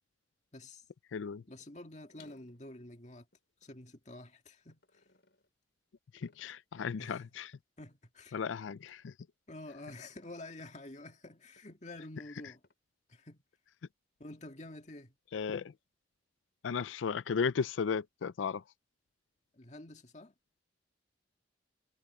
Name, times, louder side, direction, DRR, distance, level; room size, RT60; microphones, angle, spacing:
voice 1, 0.5-0.8 1.5-3.3 3.6-5.0 7.0-7.2 7.8-8.4 9.5-12.6 13.1-13.4 14.2-15.2 19.5-20.3, left 2 dB, 35° left, 2.0 m, -49 dB
voice 2, 1.1-1.4 6.1-7.5 8.3-9.1 15.3-15.7 16.6-18.6, left 6 dB, 85° left, 0.4 m, -35 dB
sound 1, 1.6-1.8 2.1-4.0 4.7-5.5 6.2-6.8 7.2-7.6 8.2-8.4 8.7-9.1 9.7-10.7 11.6-11.7 12.6-12.7, left 4 dB, 65° left, 4.8 m, -65 dB
head